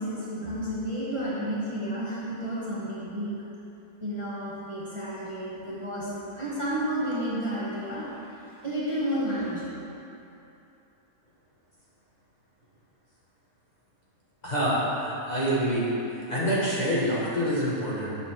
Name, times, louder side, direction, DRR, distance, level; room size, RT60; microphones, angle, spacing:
voice 1, 0.0-3.3 4.0-9.7, equal, 20° right, -8 dB, 1.1 m, -31 dB
voice 2, 14.4-15.9 16.1-18.2, equal, 30° left, -8 dB, 1.3 m, -26 dB
7.4 x 5.4 x 6.0 m, 3.0 s
omnidirectional pair, 1.7 m